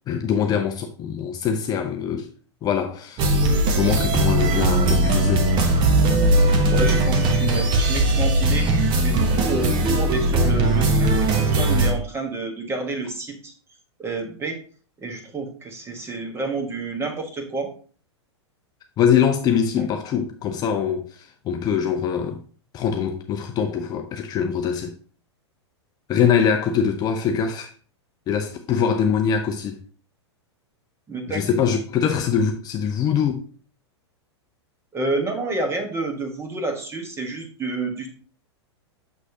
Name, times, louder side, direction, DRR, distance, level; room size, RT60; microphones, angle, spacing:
voice 1, 0.1-2.3 2.6-3.3 3.8-5.5 19.0-22.4 22.7-25.0 26.1-27.7 28.3-29.8 31.3-33.5, left 7 dB, 25° left, 0.6 m, -23 dB
System Of Lies, 3.2-11.9, right 2 dB, 30° right, 1.1 m, -19 dB
voice 2, 6.7-8.7 9.0-13.5 14.0-14.6 15.0-17.7 19.8-19.9 31.1-31.4 34.9-38.1, right 2 dB, 15° right, 1.4 m, -29 dB
6.6 x 6.1 x 2.8 m
figure-of-eight pair, 100°, 15 cm